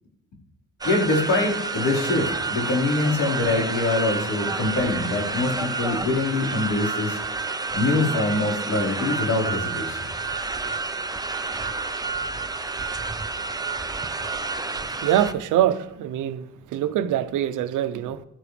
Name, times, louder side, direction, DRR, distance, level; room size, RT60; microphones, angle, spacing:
voice 1, 0.8-7.2 7.7-10.0, left 2 dB, 80° left, 4.7 m, -24 dB
sound 1, 0.8-15.3, right 4 dB, 15° right, 0.8 m, -29 dB
voice 2, 15.0-18.2, right 11 dB, 85° right, 0.8 m, -24 dB
16.5 x 12.0 x 3.4 m
cardioid pair, 90°, 30 cm